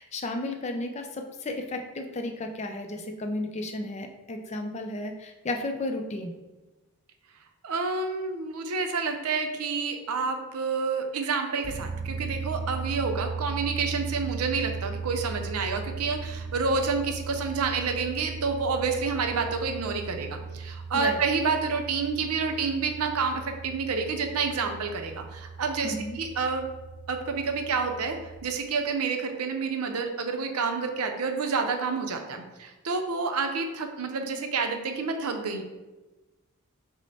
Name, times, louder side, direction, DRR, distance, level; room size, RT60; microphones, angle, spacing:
voice 1, 0.0-6.3 20.9-21.2 25.8-26.2, left 2 dB, 30° left, 4 dB, 0.4 m, -33 dB
voice 2, 7.6-26.7 27.1-28.2 28.4-35.6, right 4 dB, 85° right, 5 dB, 0.6 m, -29 dB
sound 1, 11.6-28.4, right 4 dB, 35° right, 0.7 m, -37 dB
6.1 x 2.1 x 4.1 m, 1.1 s
head